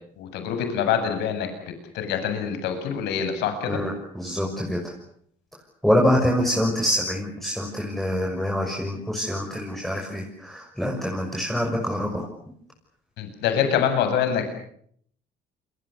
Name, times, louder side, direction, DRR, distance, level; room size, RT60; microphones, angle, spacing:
voice 1, 0.2-1.5 1.9-3.8 13.2-14.5, left 8 dB, 85° left, 7 dB, 7.8 m, -25 dB
voice 2, 3.7-4.9 5.8-12.3, equal, ahead, 0 dB, 6.3 m, -25 dB
29.0 x 25.0 x 7.0 m, 0.64 s
cardioid pair, 110°, 17 cm